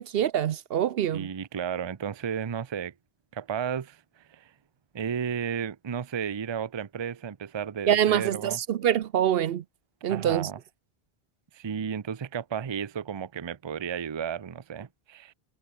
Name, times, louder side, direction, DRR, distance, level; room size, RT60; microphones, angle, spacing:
voice 1, 0.0-1.3 7.9-9.6 10.0-10.5, right 10 dB, 70° right, 0.8 m, -25 dB
voice 2, 1.1-2.9 3.3-4.0 4.3-4.5 4.9-8.6 10.1-10.6 11.5-15.3, right 7 dB, 35° right, 0.5 m, -33 dB
omnidirectional pair, 1.1 m